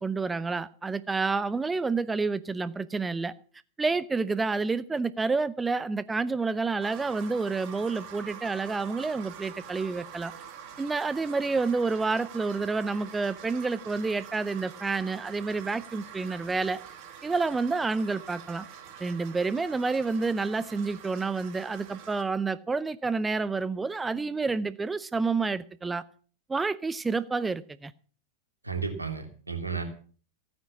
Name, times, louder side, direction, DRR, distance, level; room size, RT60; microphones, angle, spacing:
voice 1, 0.0-3.3 3.8-10.3 10.8-16.8 17.2-18.6 19.0-26.0 26.5-27.9, right 4 dB, 10° right, 0.6 m, -29 dB
sound 1, 6.8-22.2, right 8 dB, 45° right, 2.6 m, -45 dB
voice 2, 28.6-29.8, right 5 dB, 80° right, 2.9 m, -33 dB
15.5 x 9.7 x 7.1 m
figure-of-eight pair, 90°, 0 cm